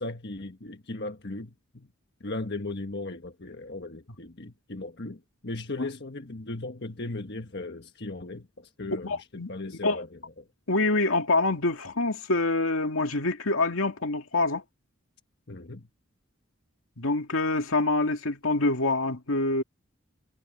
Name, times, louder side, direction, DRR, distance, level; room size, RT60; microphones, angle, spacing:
voice 1, 0.0-1.9 2.2-10.5 15.5-15.9, left 2 dB, 50° left, 1.4 m, -37 dB
voice 2, 9.0-9.5 9.8-10.0 10.7-14.6 17.0-19.6, left 2 dB, 75° left, 2.3 m, -26 dB
head